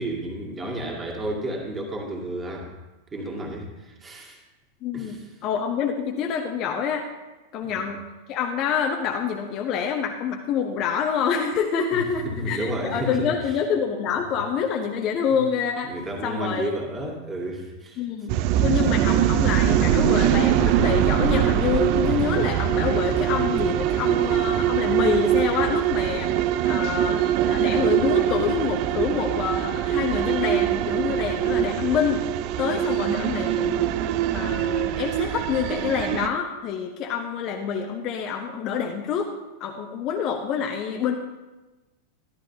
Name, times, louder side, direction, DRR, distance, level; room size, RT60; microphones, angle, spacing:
voice 1, 0.0-2.7 3.1-4.4 4.9-5.2 7.6-7.8 11.9-13.6 15.3-15.4 15.9-18.0, right 1 dB, 15° right, -1 dB, 2.2 m, -31 dB
voice 2, 4.8-7.1 7.5-8.0 8.3-15.9 16.2-16.7 18.0-26.3 26.6-32.2 32.6-34.0 34.3-39.3 39.6-41.2, left 7 dB, 35° left, 3 dB, 0.9 m, -27 dB
sound 1, 18.3-36.3, right 11 dB, 45° right, 0.5 m, -23 dB
13.0 x 12.0 x 2.8 m, 1.1 s
figure-of-eight pair, 90°, 0 cm